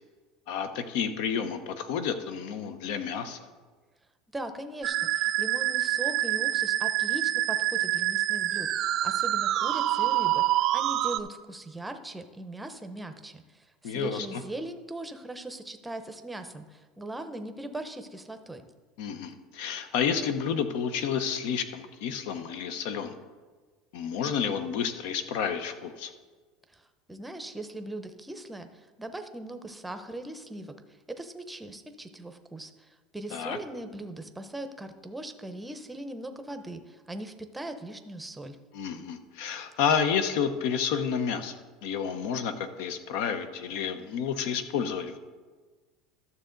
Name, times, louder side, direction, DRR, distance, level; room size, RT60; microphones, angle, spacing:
voice 1, 0.5-3.5 13.8-14.4 19.0-23.1 23.9-26.1 33.3-33.6 38.7-45.2, left 7 dB, 75° left, 10 dB, 0.8 m, -30 dB
voice 2, 4.3-18.6 26.7-38.6, right 1 dB, 5° right, 8 dB, 0.7 m, -40 dB
Musical instrument, 4.8-11.2, right 14 dB, 45° right, 0.4 m, -26 dB
12.5 x 6.9 x 3.9 m, 1.4 s
supercardioid pair, 140°, 0 cm